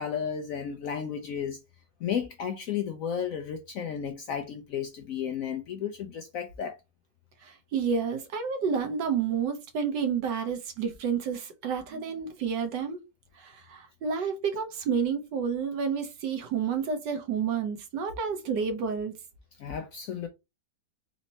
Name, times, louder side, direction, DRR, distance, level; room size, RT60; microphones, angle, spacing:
voice 1, 0.0-1.6 2.0-6.8 19.6-20.3, left 8 dB, 70° left, 0.8 m, -33 dB
voice 2, 7.4-13.0 13.4-19.1, right 6 dB, 75° right, 1.5 m, -30 dB
4.1 x 4.1 x 2.7 m
omnidirectional pair, 1.9 m